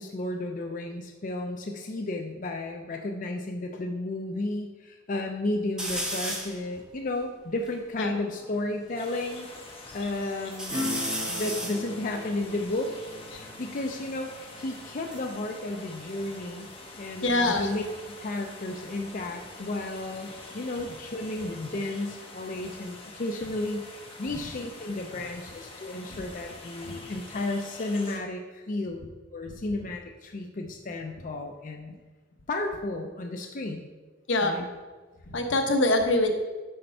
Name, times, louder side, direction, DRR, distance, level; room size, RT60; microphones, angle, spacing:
voice 1, 0.0-9.5 9.9-11.0 11.3-12.9 13.3-16.7 17.0-17.8 18.1-31.9 32.5-33.9 34.4-34.6, left 2 dB, 45° left, 3 dB, 0.5 m, -33 dB
sound 1, 5.8-6.6 7.2-7.3 7.4-9.0 9.5-10.1 10.5-13.9 14.8-16.7 17.0-17.5 19.0-21.7 22.0-22.8, equal, 5° right, 1.0 m, -38 dB
sound 2, 8.9-28.2, left 2 dB, 30° left, 1.0 m, -46 dB
Acoustic guitar / Strum, 10.7-16.9 17.3-17.4, left 1 dB, 25° right, 1.4 m, -40 dB
voice 2, 17.2-17.7 24.3-24.4 26.8-27.1 34.3-34.6 35.3-36.3, left 2 dB, 75° left, 5 dB, 0.9 m, -24 dB
6.6 x 4.3 x 5.5 m, 1.4 s
head